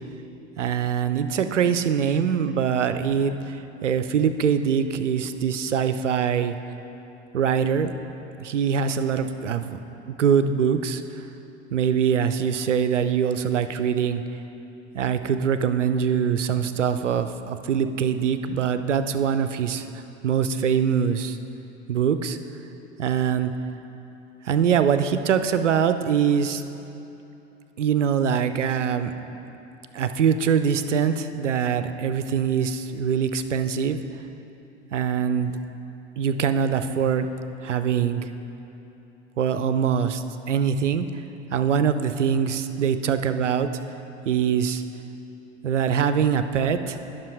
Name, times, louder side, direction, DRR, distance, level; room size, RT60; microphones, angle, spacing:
voice 1, 0.6-6.5 7.3-7.9 8.4-9.8 10.2-11.0 11.7-14.2 14.9-19.9 20.2-21.4 21.9-22.4 23.0-23.5 24.4-26.6 27.8-29.1 29.9-34.0 34.9-35.5 36.2-37.3 37.6-38.3 39.4-41.1 41.5-43.7 44.3-44.8 45.6-47.0, right 7 dB, 90° right, 10 dB, 0.5 m, -23 dB
10.0 x 6.1 x 4.7 m, 2.9 s
hypercardioid pair, 85°, 35 cm